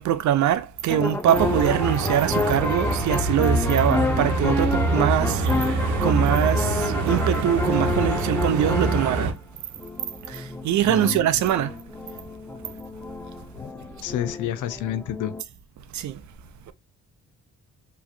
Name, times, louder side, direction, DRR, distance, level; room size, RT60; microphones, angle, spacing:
voice 1, 0.0-5.5 6.0-9.4 10.3-11.7 15.9-16.2 16.7-16.8, right 11 dB, 70° right, 0.7 m, -23 dB
sound 1, 0.9-9.3 9.8-15.4, left 3 dB, 10° left, 0.5 m, -29 dB
sound 2, 1.3-9.3, right 3 dB, 85° right, 1.0 m, -25 dB
voice 2, 10.9-11.2 13.6-13.7 14.0-15.3, left 11 dB, 80° left, 0.7 m, -29 dB
4.9 x 3.1 x 2.6 m
cardioid pair, 90°, 30 cm